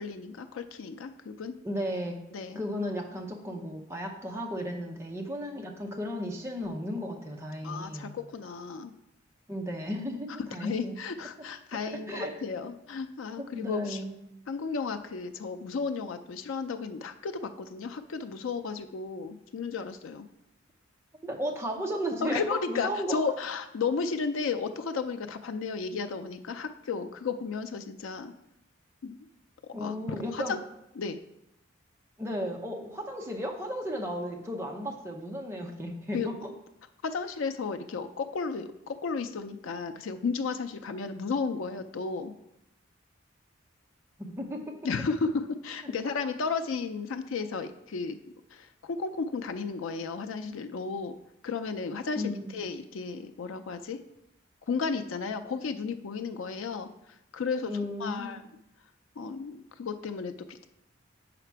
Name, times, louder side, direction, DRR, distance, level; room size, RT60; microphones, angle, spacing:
voice 1, 0.0-1.6 2.3-2.6 7.6-8.9 10.6-14.0 14.5-20.3 22.2-28.3 29.0-29.2 29.8-30.6 30.9-31.2 36.1-36.3 37.0-42.3 44.8-48.2 48.5-51.2 51.4-54.0 54.7-56.9 57.3-58.4 59.2-60.7, left 4 dB, 80° left, 8 dB, 0.4 m, -33 dB
voice 2, 1.6-2.2 2.5-8.1 9.5-11.0 11.9-12.3 13.4-14.2 21.2-22.4 22.7-23.2 29.7-30.5 32.2-36.4 44.2-44.7 45.8-45.9 52.2-52.6 57.7-58.4, equal, 15° right, 1 dB, 0.7 m, -34 dB
5.8 x 5.0 x 4.6 m, 0.84 s
head